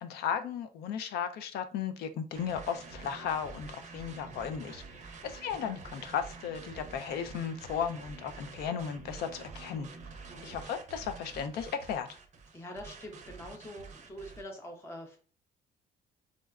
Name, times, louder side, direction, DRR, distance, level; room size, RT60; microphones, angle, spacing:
voice 1, 0.0-9.9 10.4-12.2, left 7 dB, 70° left, 9 dB, 0.4 m, -35 dB
sound 1, 2.3-14.4, right 4 dB, 45° right, 0.5 m, -48 dB
voice 2, 10.3-10.6 12.5-15.2, equal, 15° left, 2 dB, 0.5 m, -45 dB
3.7 x 2.1 x 2.3 m, 0.39 s
cardioid pair, 110°, 17 cm